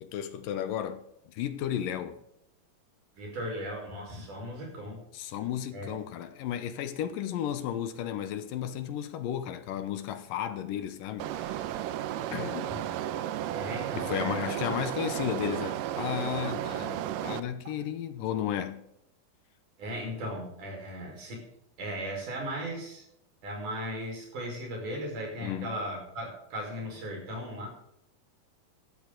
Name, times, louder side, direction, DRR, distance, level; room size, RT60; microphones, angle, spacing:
voice 1, 0.0-2.2 5.1-11.8 12.3-12.7 14.0-18.8 25.4-25.8, left 10 dB, 80° left, 2.6 m, -34 dB
voice 2, 3.2-5.0 5.7-5.9 12.7-12.8 13.5-14.4 17.6-17.8 19.8-21.4 21.8-23.0 23.4-27.7, equal, 60° right, 6.5 m, -37 dB
sound 1, 11.2-17.4, right 11 dB, 75° right, 2.3 m, -33 dB
14.5 x 12.5 x 3.9 m
omnidirectional pair, 4.1 m